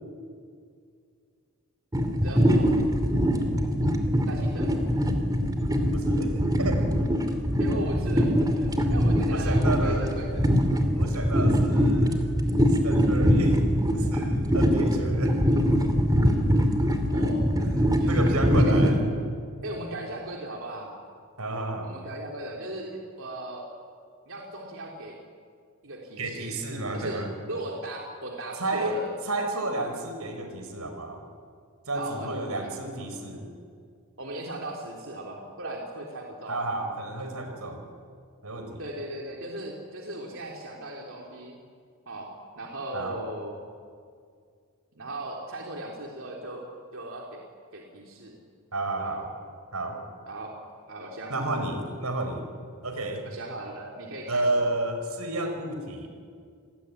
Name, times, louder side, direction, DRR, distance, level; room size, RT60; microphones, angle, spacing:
sound 1, 1.9-19.0, equal, 15° right, 2.7 m, -23 dB
voice 1, 2.2-2.8 4.3-4.8 7.6-10.5 11.1-11.5 17.1-17.5 17.9-18.8 19.6-21.0 21.8-23.6 24.3-25.2 25.8-26.6 26.9-29.1 31.9-32.7 34.2-36.6 38.8-41.6 42.1-42.3 42.6-43.6 45.0-46.7 46.9-47.4 47.7-48.4 49.0-49.2 50.3-50.5 50.9-51.5 53.2-54.6, right 1 dB, 65° right, -1 dB, 3.7 m, -37 dB
voice 2, 5.9-6.9 9.3-10.1 11.0-12.5 12.8-13.6 13.9-15.4 17.6-17.7 18.1-19.1 21.4-21.9 26.2-27.3 28.6-29.0 29.3-31.2 31.9-33.5 36.5-37.8 38.4-38.8 42.9-43.2 48.7-49.3 49.7-50.0 51.3-52.4 52.8-53.2 54.3-56.1, right 2 dB, 85° right, 5 dB, 5.2 m, -31 dB
28.0 x 20.5 x 9.9 m, 2.2 s
head